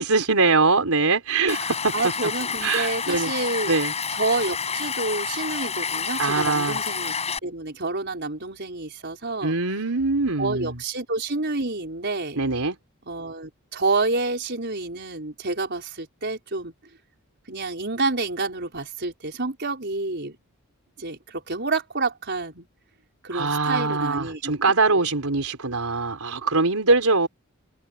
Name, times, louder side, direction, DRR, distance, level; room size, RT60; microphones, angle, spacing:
voice 1, 0.0-1.9 2.6-3.3 3.7-3.9 6.2-6.8 9.4-10.8 12.4-12.7 23.3-27.3, right 3 dB, 75° right, 4.1 m, -22 dB
Stream, 1.5-7.4, left 6 dB, 30° left, 7.5 m, -29 dB
voice 2, 1.9-3.7 4.1-7.1 7.4-9.6 10.4-12.4 13.0-16.7 17.5-20.4 21.0-22.7 23.2-24.6 24.9-25.1, right 3 dB, 50° right, 5.1 m, -28 dB
head